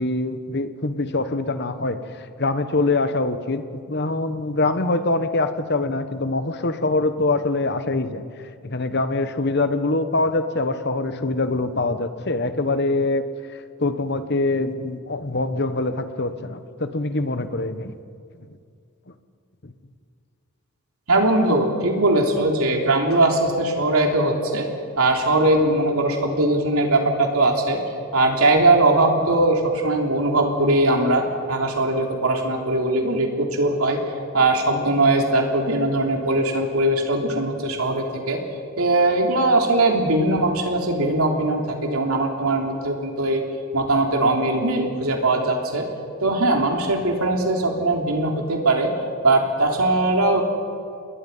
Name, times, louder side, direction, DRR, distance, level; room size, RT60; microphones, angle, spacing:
voice 1, 0.0-2.0 2.4-8.2 8.6-13.2 13.8-18.0 19.6-19.7, left 2 dB, 50° left, 10 dB, 1.2 m, -24 dB
voice 2, 21.1-24.7 25.0-27.8 28.1-34.0 34.3-38.4 38.8-43.4 43.7-45.8 46.2-48.9 49.2-50.4, right 2 dB, 80° right, 1 dB, 3.2 m, -20 dB
28.5 x 20.5 x 5.6 m, 2.3 s
head